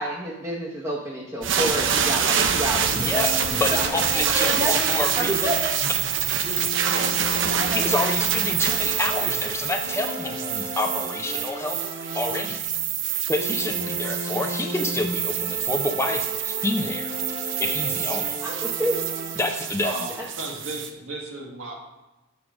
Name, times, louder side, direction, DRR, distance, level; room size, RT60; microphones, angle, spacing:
voice 1, 0.0-3.3 3.7-3.9 4.3-5.8 7.6-7.8 18.4-19.0 20.2-20.3, right 1 dB, 15° right, -6 dB, 0.8 m, -29 dB
sound 1, 1.4-20.9, right 8 dB, 70° right, 0.6 m, -26 dB
sound 2, 2.3-6.0 6.4-12.9 13.3-19.7, right 1 dB, 40° right, 1.2 m, -36 dB
voice 2, 2.9-5.4 5.8-5.9 6.2-7.0 7.7-11.8 12.1-12.6 13.3-17.1 17.6-18.4 19.4-19.9, left 2 dB, 15° left, 4 dB, 0.5 m, -28 dB
voice 3, 19.8-21.7, right 2 dB, 85° right, -2 dB, 2.0 m, -35 dB
7.0 x 4.7 x 6.1 m, 1.0 s
head